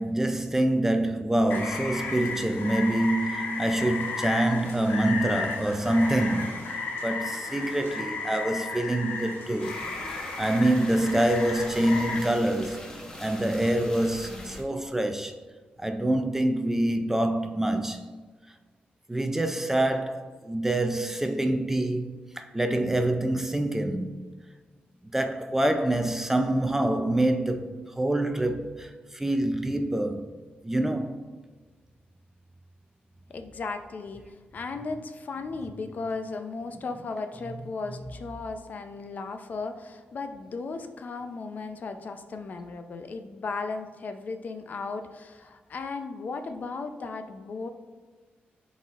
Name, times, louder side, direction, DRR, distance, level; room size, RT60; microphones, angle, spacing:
voice 1, 0.0-6.6 7.0-9.8 10.4-12.9 13.2-15.3 15.8-18.1 19.1-24.2 25.1-30.3 30.6-31.3, right 1 dB, 10° right, 0.4 m, -26 dB
Rain, 1.5-12.2, left 3 dB, 90° left, 1.5 m, -34 dB
sound 1, 9.6-14.6, left 1 dB, 15° left, 0.9 m, -42 dB
voice 2, 33.3-47.7, left 4 dB, 50° left, 0.5 m, -36 dB
10.5 x 4.1 x 2.4 m
wide cardioid pair, 135°, 4 cm